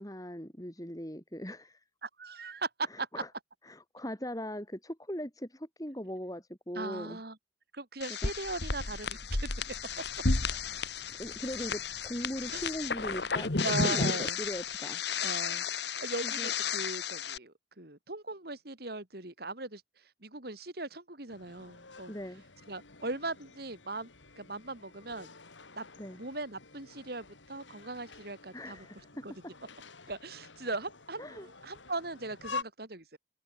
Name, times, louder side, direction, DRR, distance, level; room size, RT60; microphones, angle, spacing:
voice 1, 0.0-1.8 2.9-3.3 3.6-7.2 8.2-8.3 11.2-15.0 16.2-16.5 22.1-22.4 26.0-26.2 28.5-29.5 31.2-31.5, equal, 20° left, 5.6 m, -40 dB
voice 2, 2.0-3.1 6.7-7.4 7.7-9.5 12.5-12.6 13.6-14.4 15.2-15.7 16.0-22.1 22.7-24.1 24.4-25.3 25.8-25.9 26.2-28.9 29.2-29.3 30.1-33.2, right 2 dB, 55° right, 2.8 m, -39 dB
sound 1, 8.0-17.4, left 5 dB, 65° left, 1.9 m, -33 dB
sound 2, 21.3-32.6, left 4 dB, 80° left, 4.1 m, -48 dB
head